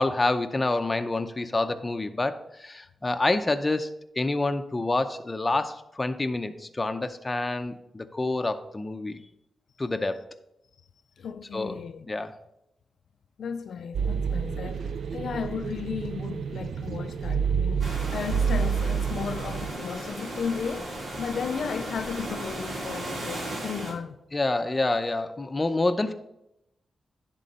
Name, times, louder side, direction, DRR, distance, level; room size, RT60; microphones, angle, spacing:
voice 1, 0.0-3.9 4.2-9.2 9.8-10.2 11.5-11.8 12.1-12.3 24.3-26.1, left 2 dB, 25° left, 0.6 m, -27 dB
voice 2, 11.2-12.1 13.4-24.2, left 6 dB, 80° left, 0.4 m, -34 dB
sound 1, 13.9-19.7, right 6 dB, 85° right, 0.3 m, -29 dB
sound 2, 17.8-23.9, right 1 dB, 70° right, 2.4 m, -36 dB
10.5 x 3.8 x 5.3 m
cardioid pair, 80°, 0 cm